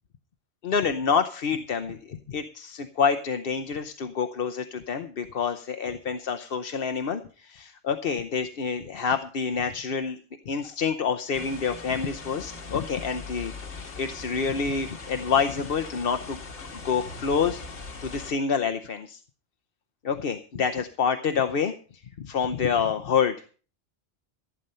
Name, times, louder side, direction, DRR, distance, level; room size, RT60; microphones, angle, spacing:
voice 1, 0.6-10.2 10.5-13.5 13.9-16.4 16.8-19.2 20.0-21.7 22.2-23.3, left 6 dB, 60° left, 8 dB, 1.0 m, -27 dB
sound 1, 11.3-18.3, left 3 dB, 90° left, 1.9 m, -40 dB
15.0 x 9.0 x 5.5 m, 0.40 s
omnidirectional pair, 1.1 m